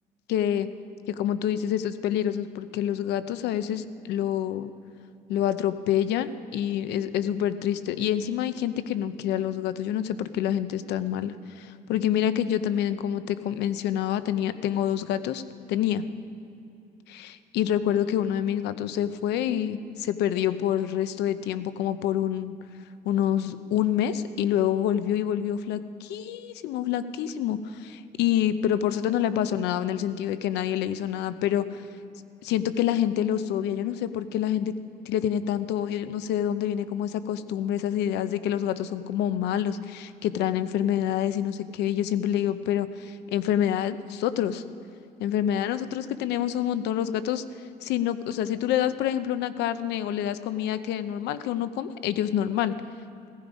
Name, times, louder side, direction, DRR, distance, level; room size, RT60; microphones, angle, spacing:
voice 1, 0.3-0.7 1.1-4.7 5.3-15.4 15.7-16.1 17.1-22.6 23.0-31.9 32.4-34.7 35.1-44.6 45.2-47.4 47.8-52.8, left 10 dB, 85° left, 12 dB, 0.8 m, -27 dB
16.0 x 15.0 x 5.2 m, 2.7 s
cardioid pair, 110°, 17 cm